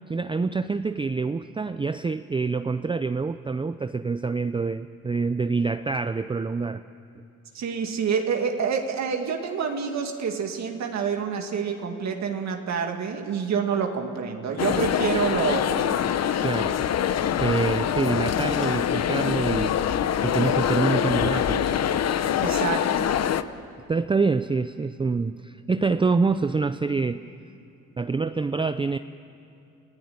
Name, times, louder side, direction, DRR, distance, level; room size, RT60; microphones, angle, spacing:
voice 1, 0.1-6.8 16.4-16.8 17.4-19.8 20.2-21.7 23.9-27.3 28.0-29.0, right 4 dB, 15° right, 11 dB, 0.5 m, -26 dB
voice 2, 7.5-15.9 22.4-23.1, right 6 dB, 65° right, 4 dB, 2.2 m, -27 dB
sound 1, 14.6-23.4, left 9 dB, 55° left, 0.9 m, -24 dB
27.5 x 16.0 x 9.4 m, 2.7 s
cardioid pair, 90°, 30 cm